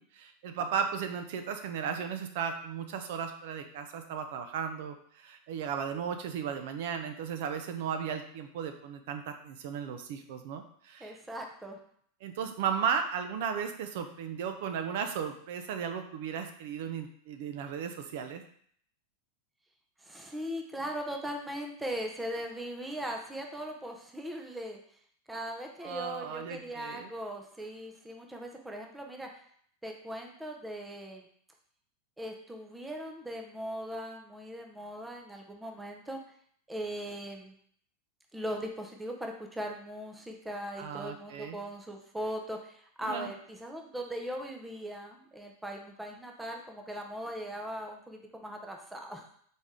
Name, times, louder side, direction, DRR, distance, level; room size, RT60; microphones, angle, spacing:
voice 1, 0.0-11.2 12.2-18.4 25.8-27.1 40.8-41.6 43.0-43.3, right 7 dB, 65° right, 7 dB, 0.5 m, -35 dB
voice 2, 11.0-11.8 20.0-24.8 25.3-29.4 29.8-31.3 32.2-36.3 36.7-37.5 38.3-49.2, equal, 5° right, 2 dB, 0.6 m, -39 dB
4.1 x 3.4 x 3.6 m, 0.62 s
supercardioid pair, 150°, 0 cm